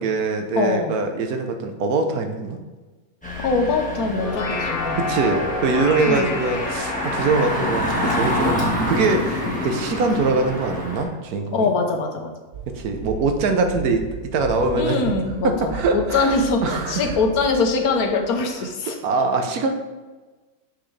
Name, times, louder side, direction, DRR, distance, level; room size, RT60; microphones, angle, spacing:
voice 1, 0.0-2.6 5.0-11.7 12.7-15.0 15.4-17.2 19.0-19.7, right 3 dB, 85° right, 5 dB, 1.3 m, -23 dB
voice 2, 0.5-0.9 3.4-5.0 6.1-6.4 9.4-9.8 11.5-12.3 14.7-19.0, left 3 dB, 85° left, 3 dB, 1.4 m, -23 dB
Engine, 3.2-11.0, left 1 dB, 5° left, 1.3 m, -27 dB
sound 1, 4.0-9.6, left 3 dB, 50° left, 0.8 m, -30 dB
sound 2, 12.5-18.6, right 5 dB, 50° right, 0.9 m, -36 dB
6.4 x 6.0 x 3.3 m, 1.2 s
omnidirectional pair, 1.5 m